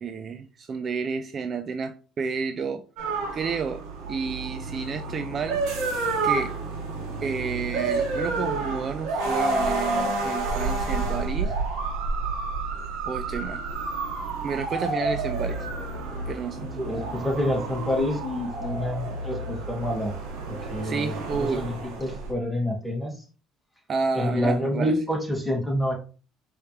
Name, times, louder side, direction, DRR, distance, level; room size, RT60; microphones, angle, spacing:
voice 1, 0.0-2.8 3.3-3.8 4.1-5.6 6.2-6.5 7.2-11.5 13.1-13.6 14.4-15.7 16.3-16.6 20.8-21.6 23.9-24.9, right 5 dB, 40° right, 0.4 m, -30 dB
sound 1, 3.0-22.3, right 3 dB, 75° right, 1.2 m, -30 dB
voice 2, 16.8-20.1 20.5-23.1 24.1-25.9, left 1 dB, ahead, 1.9 m, -27 dB
4.8 x 3.1 x 3.0 m
supercardioid pair, 80°, 0 cm